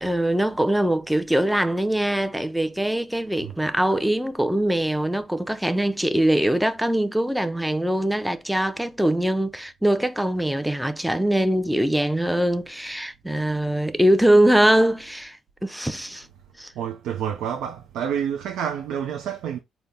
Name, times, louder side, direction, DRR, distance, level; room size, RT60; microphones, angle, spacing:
voice 1, 0.0-16.3 16.6-16.7, right 1 dB, 5° right, 0.4 m, -22 dB
voice 2, 16.8-19.6, right 8 dB, 85° right, 0.4 m, -28 dB
4.0 x 2.0 x 3.3 m
cardioid pair, 90°, 0 cm